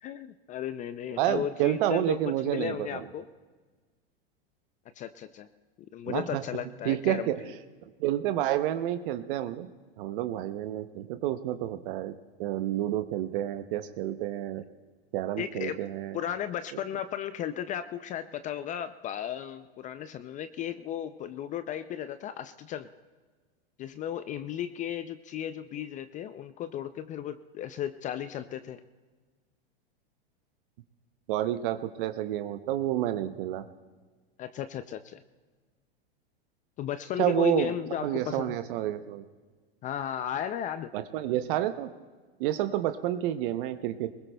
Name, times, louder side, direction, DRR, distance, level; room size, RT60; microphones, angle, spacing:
voice 1, 0.0-3.3 5.0-5.5 5.9-7.5 15.4-15.8 16.1-22.9 23.8-28.8 34.4-35.2 36.8-38.6 39.8-40.9, left 10 dB, 25° left, 12 dB, 0.4 m, -35 dB
voice 2, 1.2-3.1 6.1-6.4 6.8-7.4 8.0-9.7 10.0-12.1 12.4-14.6 15.1-16.2 16.7-16.8 31.3-33.6 37.2-37.7 38.0-39.2 40.9-41.9 42.4-44.1, right 12 dB, 60° right, 10 dB, 0.8 m, -29 dB
22.5 x 20.5 x 2.2 m, 1.4 s
hypercardioid pair, 115°, 31 cm